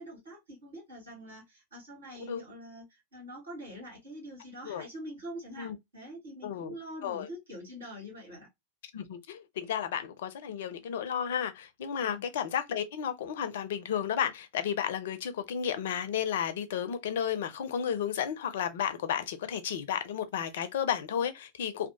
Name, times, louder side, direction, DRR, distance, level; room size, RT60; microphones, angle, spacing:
voice 1, 0.0-8.5 12.0-12.2, equal, 70° right, 1.5 m, -45 dB
voice 2, 6.4-6.7 7.0-7.3 8.9-21.9, left 8 dB, 55° left, 0.4 m, -33 dB
2.7 x 2.0 x 2.8 m
figure-of-eight pair, 90°, 0 cm